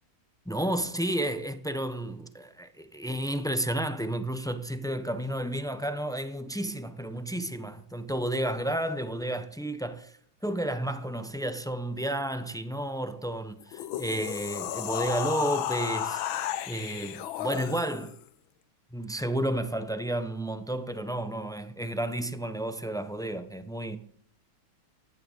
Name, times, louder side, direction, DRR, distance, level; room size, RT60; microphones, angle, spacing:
voice 1, 0.5-10.1 10.4-16.2 16.7-18.1 18.9-24.0, right 1 dB, 5° left, 0.4 m, -31 dB
sound 1, 13.6-18.2, left 11 dB, 90° left, 1.6 m, -33 dB
16.0 x 11.0 x 7.3 m
omnidirectional pair, 2.1 m